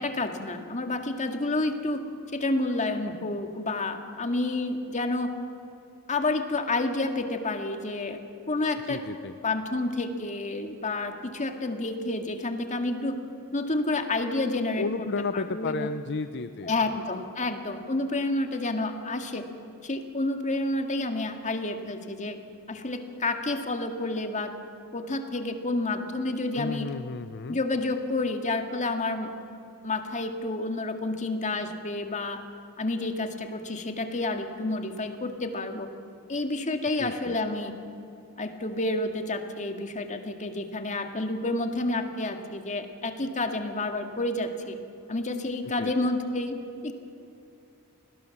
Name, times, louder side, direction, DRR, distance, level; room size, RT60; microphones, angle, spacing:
voice 1, 0.0-2.0 2.3-5.3 6.1-8.2 8.5-9.0 9.4-13.1 13.5-14.9 15.3-15.9 16.6-19.5 19.8-22.4 22.7-24.5 24.9-26.9 27.5-29.3 29.8-32.4 32.8-35.9 36.3-37.7 38.4-44.8 45.1-46.6 46.8-46.9, left 2 dB, 35° left, 6 dB, 2.1 m, -29 dB
voice 2, 8.8-9.3 14.8-17.0 26.5-27.6 37.0-37.3 45.8-45.9, left 4 dB, 50° left, 11 dB, 0.6 m, -33 dB
29.0 x 20.5 x 7.3 m, 2.6 s
head